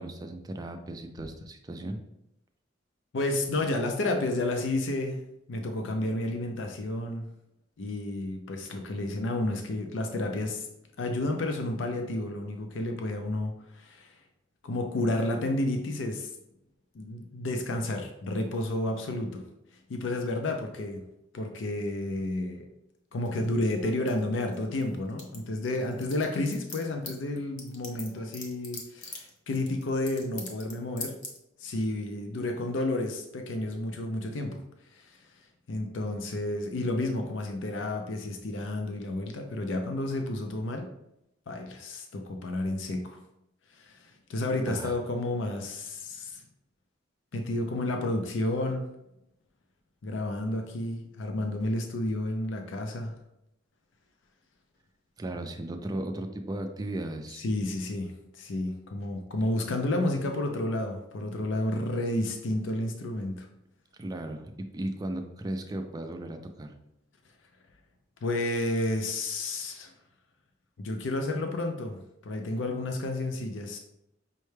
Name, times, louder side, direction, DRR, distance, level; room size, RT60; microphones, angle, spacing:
voice 1, 0.0-2.0 44.7-45.0 55.2-57.4 64.0-66.7, right 1 dB, 20° right, 5 dB, 0.3 m, -36 dB
voice 2, 3.1-5.2 5.5-7.3 7.8-10.7 11.0-14.1 14.6-16.3 16.9-19.4 19.9-21.0 21.3-22.7 23.1-31.1 31.6-34.6 34.9-35.2 35.7-40.9 41.5-43.2 43.7-46.4 47.3-48.9 50.0-53.2 57.4-63.5 68.2-69.9 70.8-73.8, left 1 dB, 70° left, 4 dB, 0.5 m, -31 dB
sound 1, 23.2-24.8 25.1-30.7 31.0-31.4, left 3 dB, 40° left, 0.8 m, -41 dB
5.5 x 2.2 x 3.2 m, 0.83 s
head